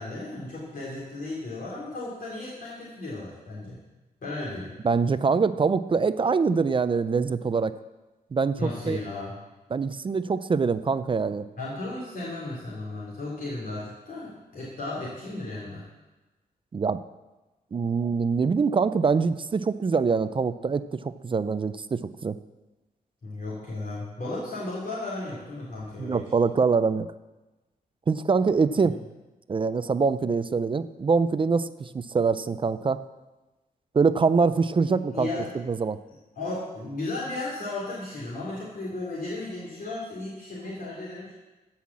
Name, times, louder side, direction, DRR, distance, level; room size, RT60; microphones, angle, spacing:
voice 1, 0.0-3.8 4.2-4.7 8.6-9.3 11.6-15.8 23.2-26.2 35.1-35.5 36.3-41.3, left 2 dB, 60° left, -6 dB, 3.4 m, -35 dB
voice 2, 4.8-7.7 8.3-9.0 9.7-11.4 16.7-17.0 17.7-22.3 26.0-27.1 28.1-28.9 29.5-33.0 33.9-35.3 35.7-36.0, right 5 dB, 30° right, 13 dB, 0.4 m, -24 dB
14.5 x 5.7 x 7.4 m, 1.1 s
wide cardioid pair, 130°, 16 cm